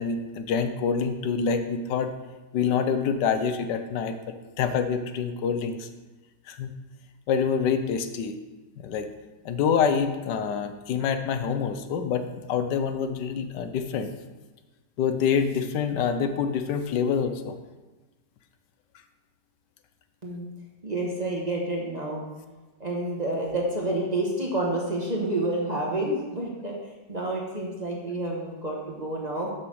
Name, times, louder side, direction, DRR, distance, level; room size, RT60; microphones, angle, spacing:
voice 1, 0.0-2.1 2.5-5.9 6.5-6.7 7.3-8.3 8.8-9.1 9.4-14.1 15.0-17.6, left 6 dB, 80° left, 8 dB, 1.3 m, -26 dB
voice 2, 20.8-22.2 22.8-29.5, right 1 dB, 25° right, -2 dB, 1.1 m, -29 dB
6.3 x 6.0 x 6.3 m, 1.2 s
omnidirectional pair, 1.9 m